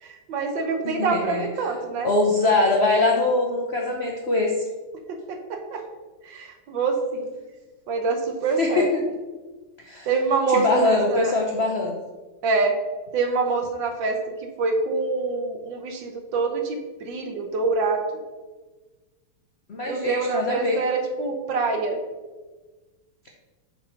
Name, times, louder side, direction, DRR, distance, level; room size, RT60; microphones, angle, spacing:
voice 1, 0.0-2.1 5.1-5.8 6.2-7.3 7.9-8.9 10.1-11.3 12.4-12.7 13.1-14.2 14.6-18.0 19.9-22.0, right 4 dB, 65° right, 4 dB, 1.4 m, -25 dB
voice 2, 0.8-1.5 2.0-4.6 8.6-9.1 9.8-10.1 10.5-12.0 19.7-20.8, left 2 dB, 65° left, -1 dB, 0.6 m, -22 dB
7.1 x 4.2 x 5.7 m, 1.3 s
omnidirectional pair, 2.4 m